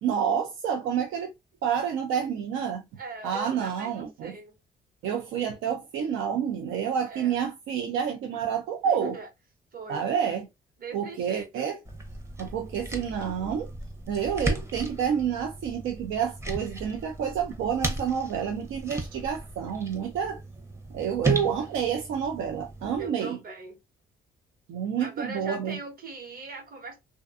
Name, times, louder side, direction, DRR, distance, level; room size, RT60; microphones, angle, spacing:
voice 1, 0.0-1.3 1.6-2.8 3.2-4.3 5.0-9.1 9.9-10.5 10.9-11.8 12.4-13.7 14.1-20.4 20.9-23.4 24.7-25.8, right 8 dB, 90° right, 0.5 m, -29 dB
voice 2, 3.0-4.5 7.1-7.4 8.8-9.3 9.7-10.0 10.8-11.7 23.0-23.8 25.0-27.0, right 3 dB, 50° right, 0.9 m, -40 dB
sound 1, 11.9-23.1, right 2 dB, 15° right, 0.6 m, -35 dB
2.5 x 2.2 x 2.4 m
cardioid pair, 90°, 20 cm